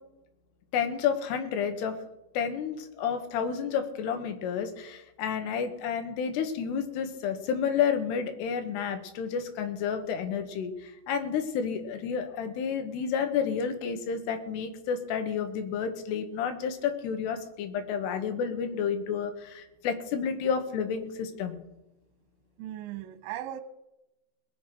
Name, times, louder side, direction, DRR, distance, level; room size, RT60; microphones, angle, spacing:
voice 1, 0.7-2.0 2.3-21.6, left 7 dB, 70° left, 3.2 m, -30 dB
voice 2, 22.6-23.6, right 12 dB, 85° right, 3.1 m, -37 dB
19.5 x 7.7 x 6.0 m
omnidirectional pair, 5.2 m